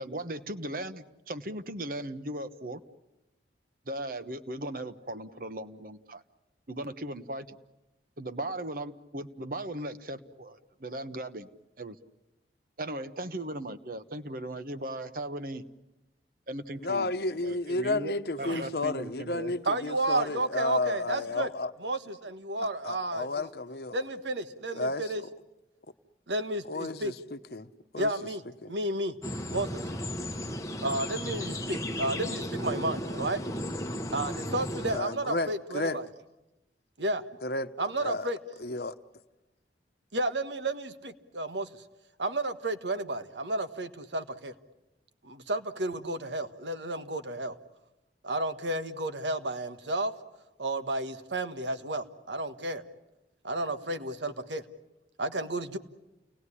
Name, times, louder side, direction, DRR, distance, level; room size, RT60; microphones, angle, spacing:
voice 1, 0.0-2.8 3.9-6.2 6.7-7.6 8.2-11.5 11.8-12.0 12.8-15.6 16.5-17.1 17.4-19.5 22.6-22.7, right 1 dB, 50° right, 11 dB, 1.1 m, -37 dB
voice 2, 16.8-21.7 22.8-24.0 24.7-25.1 26.7-27.7 27.9-28.1 28.6-28.7 34.9-36.0 37.4-37.7 38.0-38.3 38.6-38.9, left 2 dB, 60° left, 10 dB, 1.0 m, -32 dB
voice 3, 19.6-21.5 21.8-23.5 23.9-25.2 26.3-27.1 28.0-29.2 29.5-29.8 30.8-33.4 34.1-36.1 37.0-37.2 37.8-38.4 40.1-41.7 42.2-44.5 45.2-47.6 48.2-50.1 50.6-52.8 53.4-54.6 55.2-55.8, right 2 dB, 90° right, 9 dB, 1.5 m, -32 dB
sound 1, 29.2-35.0, equal, 20° left, 1.1 m, -34 dB
30.0 x 19.5 x 9.9 m, 1.0 s
head